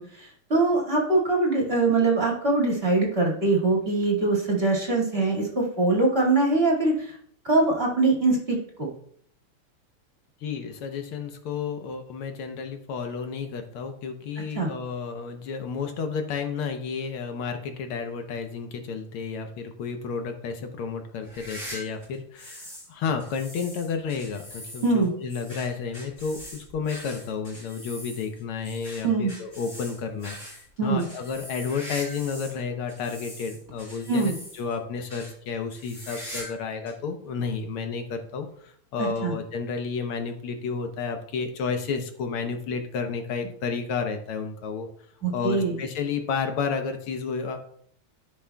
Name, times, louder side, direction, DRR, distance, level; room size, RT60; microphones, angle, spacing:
voice 1, 0.2-7.2 7.4-8.9 14.5-14.7 24.8-25.1 29.0-29.3 30.8-31.0 34.1-34.3 39.0-39.3 45.2-45.8, right 3 dB, 30° right, -3 dB, 2.1 m, -23 dB
voice 2, 10.4-44.9 45.3-47.6, left 5 dB, 80° left, 6 dB, 1.7 m, -31 dB
sound 1, 21.2-22.9 23.2-32.6 32.9-34.8 35.1-35.3 35.7-36.6 36.9-37.0 37.7-37.8 39.1-39.2, equal, 35° left, 4.4 m, -42 dB
13.5 x 6.0 x 2.3 m, 0.63 s
omnidirectional pair, 2.4 m